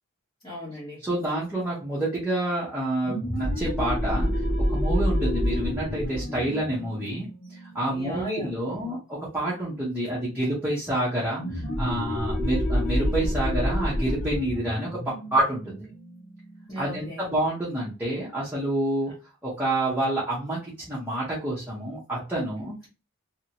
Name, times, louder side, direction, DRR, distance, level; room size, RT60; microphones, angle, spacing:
voice 1, 0.4-1.0 7.9-9.0 16.7-17.3, equal, 15° left, 1.1 m, -36 dB
voice 2, 1.0-4.4 4.7-7.3 7.6-15.8 16.8-19.1 19.4-22.7, right 1 dB, 10° right, 0.9 m, -28 dB
sound 1, 3.0-8.3 11.4-16.7, equal, 55° left, 1.1 m, -28 dB
2.8 x 2.8 x 2.8 m
head